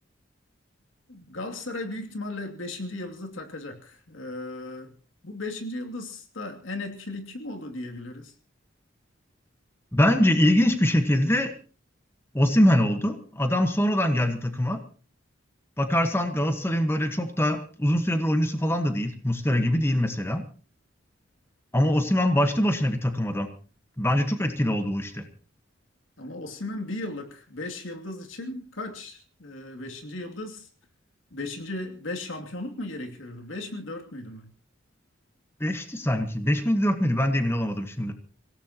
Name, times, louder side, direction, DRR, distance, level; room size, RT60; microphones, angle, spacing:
voice 1, 1.1-4.9 5.2-8.3 26.2-30.7 31.3-34.5, left 2 dB, 85° left, 3 dB, 2.8 m, -36 dB
voice 2, 9.9-11.5 12.3-14.8 15.8-20.4 21.7-23.5 24.0-25.2 35.6-38.1, equal, 10° left, 6 dB, 1.3 m, -23 dB
26.0 x 17.0 x 3.0 m, 0.39 s
head